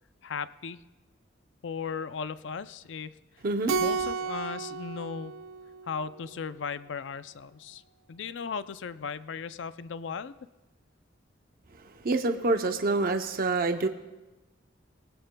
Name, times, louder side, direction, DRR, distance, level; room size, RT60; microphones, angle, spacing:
voice 1, 0.2-0.8 1.6-3.2 3.8-5.3 5.9-7.8 8.1-10.4, left 6 dB, 65° left, 14 dB, 0.5 m, -36 dB
voice 2, 3.4-3.8 11.7-13.9, right 3 dB, 50° right, 6 dB, 0.7 m, -27 dB
Keyboard (musical), 3.7-6.3, right 5 dB, 85° right, 0.5 m, -32 dB
22.5 x 16.5 x 2.2 m, 1.1 s
head